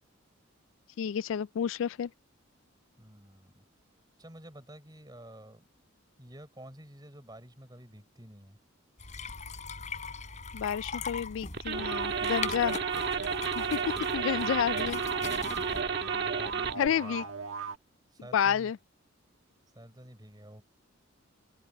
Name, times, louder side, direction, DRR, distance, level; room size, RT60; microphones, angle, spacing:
voice 1, 1.0-2.1 10.5-12.8 13.6-13.8 14.1-15.0 16.8-17.2 18.3-18.8, left 8 dB, 70° left, 0.3 m, -30 dB
voice 2, 3.0-3.6 4.2-5.7 6.2-8.6 14.5-14.6 15.6-17.3 18.1-18.7 19.7-20.6, right 1 dB, 20° right, 4.0 m, -50 dB
sound 1, 9.0-15.8, left 5 dB, 35° left, 3.9 m, -41 dB
sound 2, 11.5-16.9, right 6 dB, 50° right, 2.1 m, -32 dB
sound 3, 11.7-17.8, right 5 dB, 85° right, 1.5 m, -38 dB
head